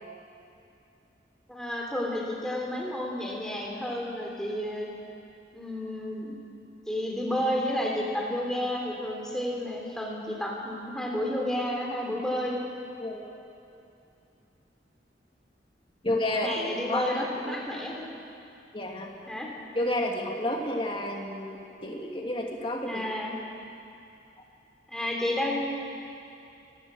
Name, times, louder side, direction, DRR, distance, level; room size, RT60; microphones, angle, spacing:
voice 1, 1.5-4.9 5.5-6.3 6.9-12.6 16.3-18.1 19.3-19.5 22.9-23.3 24.9-25.6, left 1 dB, 5° left, -2 dB, 3.2 m, -31 dB
voice 2, 13.0-13.3 16.0-17.5 18.7-19.1 19.7-23.1, left 1 dB, 30° left, 0 dB, 2.4 m, -31 dB
27.5 x 15.5 x 6.3 m, 2.7 s
head